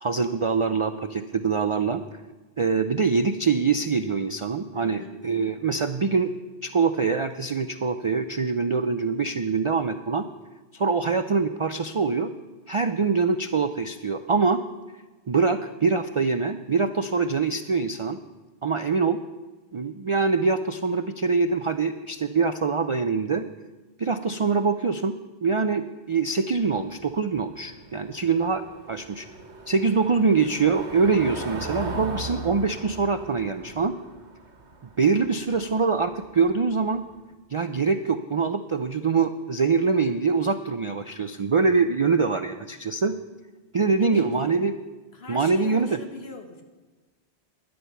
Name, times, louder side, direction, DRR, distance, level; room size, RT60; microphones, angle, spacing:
voice 1, 0.0-2.0 2.6-6.3 6.6-10.3 10.7-12.3 12.7-14.6 15.3-18.2 18.6-19.2 19.7-23.4 24.0-25.1 25.4-28.6 28.9-29.3 29.7-33.9 35.0-37.0 37.5-43.2 43.7-44.8 45.3-46.0, right 4 dB, 50° right, 9 dB, 0.3 m, -24 dB
voice 2, 4.7-5.2 44.0-44.5 45.1-46.6, left 3 dB, 65° left, 5 dB, 1.6 m, -42 dB
Car passing by / Engine, 26.5-37.2, right 2 dB, 85° right, 1.7 m, -39 dB
12.5 x 11.0 x 5.7 m, 1.2 s
omnidirectional pair, 1.1 m